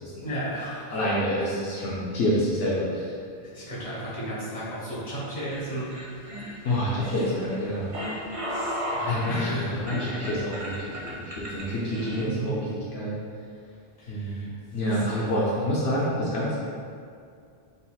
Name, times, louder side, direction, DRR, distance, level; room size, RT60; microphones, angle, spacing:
voice 1, 0.2-1.0 1.6-1.9 3.4-5.9 6.9-7.0 7.3-7.5 8.5-9.8 11.9-12.6 14.0-14.5 14.9-15.3, right 1 dB, 45° left, -9 dB, 1.4 m, -35 dB
voice 2, 0.9-3.1 6.6-7.9 9.0-12.6 12.9-13.2 14.1-16.6, equal, 80° left, -7 dB, 0.9 m, -27 dB
sound 1, 5.5-12.2, equal, 40° right, 0.7 m, -34 dB
4.0 x 4.0 x 2.3 m, 2.3 s
omnidirectional pair, 1.0 m